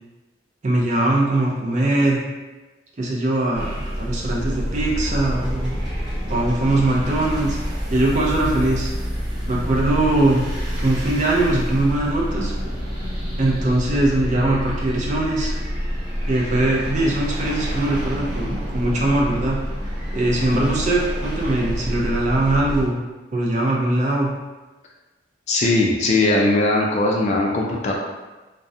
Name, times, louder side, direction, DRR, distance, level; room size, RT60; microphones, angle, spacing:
voice 1, 0.6-2.2 3.0-5.7 6.3-7.6 7.9-8.9 9.5-10.4 10.8-12.5 13.4-15.5 16.3-19.6 20.1-23.0 23.3-24.3, right 2 dB, 40° right, -3 dB, 0.4 m, -21 dB
Roller Coaster Creepy Horror, 3.5-22.9, equal, 20° right, 0.9 m, -27 dB
voice 2, 25.5-27.9, left 2 dB, 35° left, -1 dB, 0.3 m, -19 dB
2.3 x 2.0 x 2.6 m, 1.2 s
head